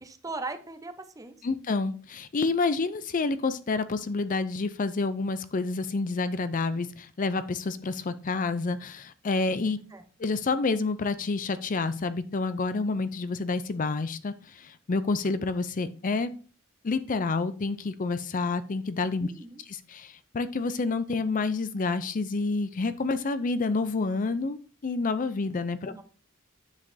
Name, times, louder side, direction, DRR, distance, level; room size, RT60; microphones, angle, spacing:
voice 1, 0.0-1.4 9.9-10.0 19.2-19.6 25.9-26.0, right 3 dB, 15° right, 9 dB, 0.7 m, -39 dB
voice 2, 1.4-9.8 10.2-16.3 16.8-19.3 19.6-25.9, left 3 dB, 40° left, 12 dB, 0.5 m, -29 dB
9.6 x 7.4 x 2.7 m, 0.38 s
head